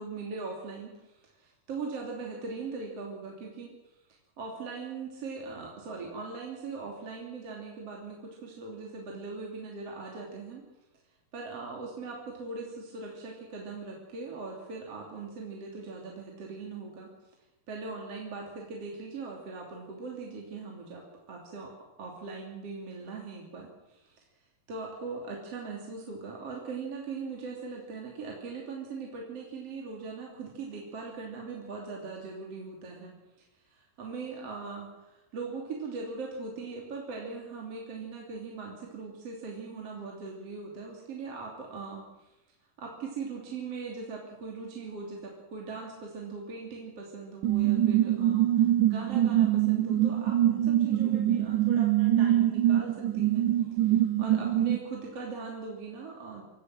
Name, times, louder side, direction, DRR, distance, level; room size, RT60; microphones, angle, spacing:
voice 1, 0.0-3.8 4.4-10.7 11.3-17.1 17.7-24.2 24.7-33.1 33.7-42.4 42.8-53.5 53.8-56.5, right 4 dB, 45° right, -1 dB, 3.9 m, -40 dB
sound 1, 47.4-54.8, right 12 dB, 70° right, 2.4 m, -24 dB
27.0 x 15.0 x 7.7 m, 0.95 s
omnidirectional pair, 4.0 m